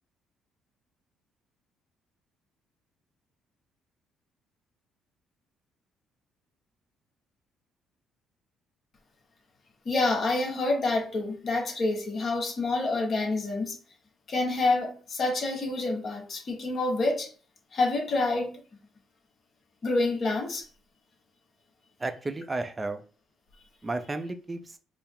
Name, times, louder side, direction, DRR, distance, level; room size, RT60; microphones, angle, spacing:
voice 1, 9.8-13.8 14.3-17.3 17.7-18.5 19.8-20.7, left 2 dB, 45° left, 1.1 m, -27 dB
voice 2, 22.0-23.0 23.8-24.8, right 2 dB, 20° right, 0.5 m, -33 dB
4.5 x 2.0 x 3.6 m
cardioid pair, 100°, 0 cm